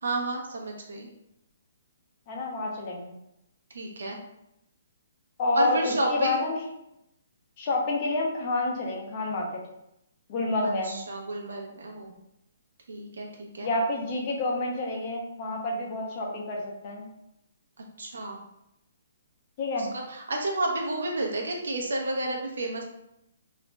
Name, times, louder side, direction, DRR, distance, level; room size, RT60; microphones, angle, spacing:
voice 1, 0.0-1.1 3.7-4.2 5.5-6.4 10.6-12.1 12.9-13.7 18.0-18.4 19.8-22.8, right 1 dB, 85° right, 0 dB, 0.7 m, -31 dB
voice 2, 2.3-3.1 5.4-6.6 7.6-9.6 10.3-10.9 13.6-17.1 19.6-19.9, left 2 dB, 30° left, 0 dB, 0.5 m, -28 dB
2.4 x 2.1 x 3.0 m, 0.83 s
hypercardioid pair, 170°, 0 cm